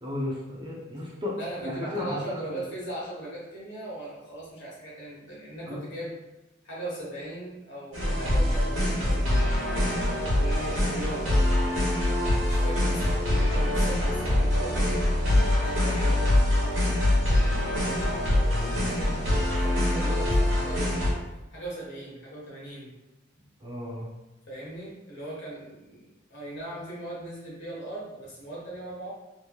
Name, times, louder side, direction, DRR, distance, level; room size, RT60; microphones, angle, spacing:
voice 1, 0.0-1.4 1.6-2.6 5.7-5.8 18.3-18.9 23.6-24.1, left 1 dB, 20° right, -6 dB, 0.6 m, -34 dB
voice 2, 1.4-6.2 6.6-11.3 12.4-15.0 15.5-16.2 18.8-19.2 19.5-21.1 21.5-22.9 24.5-29.1, right 1 dB, 60° left, -6 dB, 1.4 m, -39 dB
sound 1, 7.9-21.1, left 1 dB, 70° right, 1.1 m, -24 dB
3.3 x 3.0 x 2.3 m, 1.0 s
head